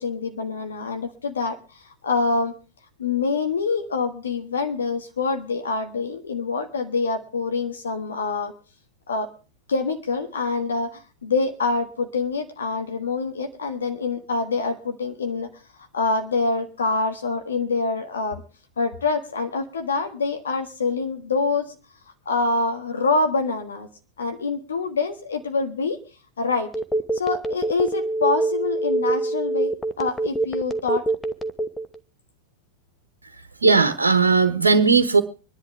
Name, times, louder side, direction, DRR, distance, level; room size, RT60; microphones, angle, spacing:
voice 1, 0.0-1.6 2.0-2.5 3.0-8.5 9.1-9.3 9.7-15.5 15.9-18.4 18.8-21.8 22.2-23.9 24.2-26.0 26.4-26.7 27.1-29.7 30.0-31.0, left 4 dB, 70° left, 5 dB, 1.4 m, -25 dB
Telephone, 26.7-32.0, right 2 dB, 10° left, 0.9 m, -24 dB
voice 2, 33.6-35.2, right 4 dB, 75° right, 9 dB, 1.1 m, -17 dB
25.5 x 10.5 x 3.4 m, 0.35 s
figure-of-eight pair, 90°, 0 cm